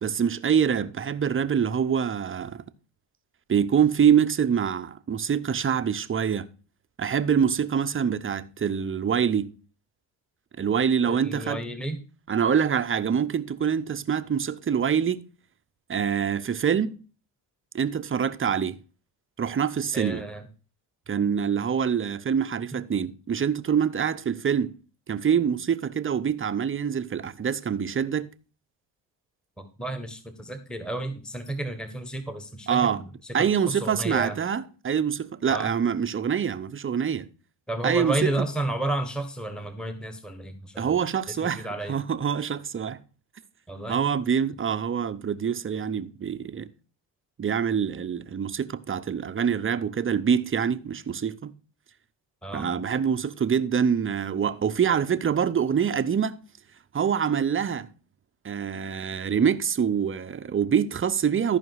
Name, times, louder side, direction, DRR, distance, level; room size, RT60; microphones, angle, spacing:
voice 1, 0.0-2.6 3.5-6.5 7.0-9.5 10.6-11.6 12.3-15.2 15.9-17.0 17.7-18.8 19.4-20.3 21.1-24.8 25.1-28.3 32.7-33.0 33.3-37.3 37.8-38.3 40.8-43.0 43.9-46.7 47.4-51.5 52.5-56.4 56.9-57.9 58.4-61.6, right 7 dB, 25° right, 0.7 m, -25 dB
voice 2, 11.1-12.0 19.9-20.5 29.6-34.4 35.5-35.7 37.7-40.9 41.3-42.0 43.7-44.1 52.4-52.7, right 1 dB, ahead, 1.3 m, -32 dB
14.0 x 5.1 x 4.8 m
supercardioid pair, 90°, 47 cm